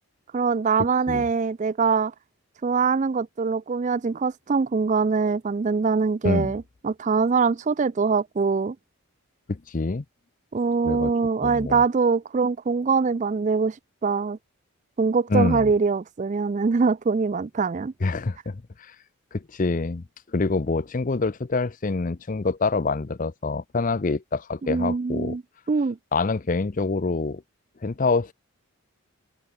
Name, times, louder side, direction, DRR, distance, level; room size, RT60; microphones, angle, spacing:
voice 1, 0.3-2.1 2.6-8.8 10.5-13.8 14.0-14.4 15.0-17.9 24.6-25.4 25.7-26.0, right 5 dB, 35° right, 0.3 m, -23 dB
voice 2, 9.5-10.0 10.8-11.1 11.4-11.8 15.3-15.7 18.0-18.9 19.3-20.0 20.3-25.4 26.1-27.4 27.8-28.3, left 3 dB, 35° left, 0.5 m, -26 dB
open air
head